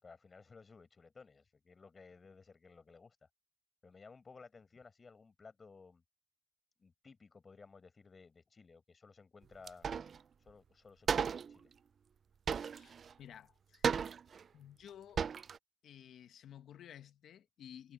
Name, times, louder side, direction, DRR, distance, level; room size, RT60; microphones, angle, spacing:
voice 1, 0.0-3.3 3.8-6.0 6.8-9.9 10.4-11.7, left 4 dB, 35° left, 5.3 m, -57 dB
sound 1, 9.7-10.2 10.5-10.6 11.1-11.6 12.5-13.1 13.8-14.4 14.9-15.0 15.2-15.6, right 6 dB, 50° right, 0.4 m, -34 dB
voice 2, 12.7-13.9 14.5-15.3 15.8-17.9, left 10 dB, 70° left, 1.2 m, -54 dB
cardioid pair, 90°, 0 cm